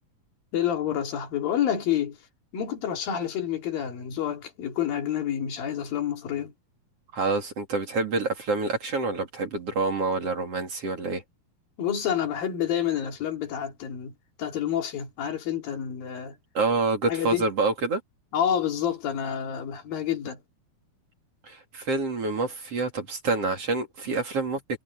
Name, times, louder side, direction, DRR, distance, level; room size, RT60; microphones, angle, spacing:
voice 1, 0.5-2.2 2.5-6.5 11.8-14.1 14.4-16.4 17.1-17.5 18.3-20.4, left 9 dB, 75° left, 4.4 m, -28 dB
voice 2, 7.1-11.2 16.6-18.0 21.5-24.6, right 3 dB, 45° right, 3.5 m, -27 dB
omnidirectional pair, 4.2 m